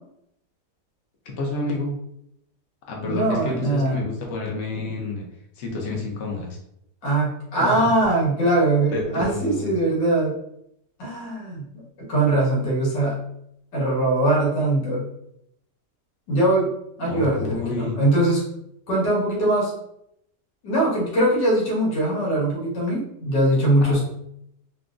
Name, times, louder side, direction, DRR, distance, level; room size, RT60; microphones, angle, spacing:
voice 1, 1.3-2.0 2.9-5.2 5.6-6.6 7.6-7.9 8.9-9.7 17.1-17.9 23.8-24.0, left 2 dB, 60° left, -1 dB, 0.8 m, -29 dB
voice 2, 3.0-4.0 7.0-10.3 11.0-11.6 12.0-13.2 13.7-15.0 16.3-16.7 17.0-18.4 18.9-19.7 20.6-24.0, right 1 dB, 80° left, -4 dB, 1.8 m, -21 dB
3.7 x 2.2 x 2.4 m, 0.75 s
omnidirectional pair, 1.9 m